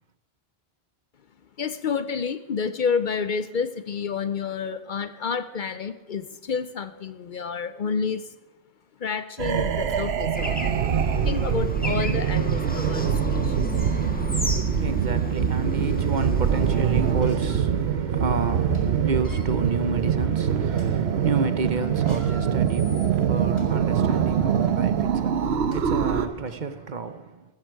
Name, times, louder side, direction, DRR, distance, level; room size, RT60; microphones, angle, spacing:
voice 1, 1.6-8.3 9.0-10.6 11.2-13.7, left 6 dB, 55° left, 0.7 m, -29 dB
sound 1, 8.8-8.9 9.6-10.0 10.6-10.7 11.0-11.2 12.6-12.7 13.6-14.0 14.8-14.9 15.4-16.1 17.0-17.6 18.1-18.2 18.5-18.8 19.1-19.4 20.1-20.3 20.7-20.9 21.9-23.7 24.3-24.5 25.3-25.4 25.7-25.8 26.5-26.6, equal, 25° left, 2.9 m, -49 dB
sound 2, 9.4-26.3, right 7 dB, 85° right, 1.0 m, -24 dB
Bird / Traffic noise roadway noise, 10.3-17.1, left 1 dB, 10° left, 1.3 m, -35 dB
voice 2, 14.4-27.4, right 4 dB, 50° right, 0.9 m, -30 dB
15.5 x 14.0 x 4.6 m
omnidirectional pair, 1.0 m